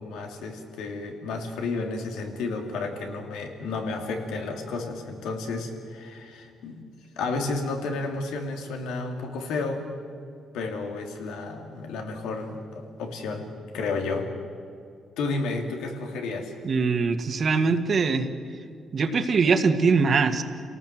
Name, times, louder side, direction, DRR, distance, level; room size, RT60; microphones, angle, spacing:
voice 1, 0.0-6.8 7.2-9.9 10.5-13.5 13.7-14.3 15.2-16.5, left 3 dB, 90° left, 3 dB, 2.8 m, -32 dB
voice 2, 16.6-18.3 18.9-20.4, right 4 dB, 45° right, 7 dB, 1.8 m, -22 dB
28.5 x 18.5 x 7.7 m, 2.4 s
cardioid pair, 90°, 0 cm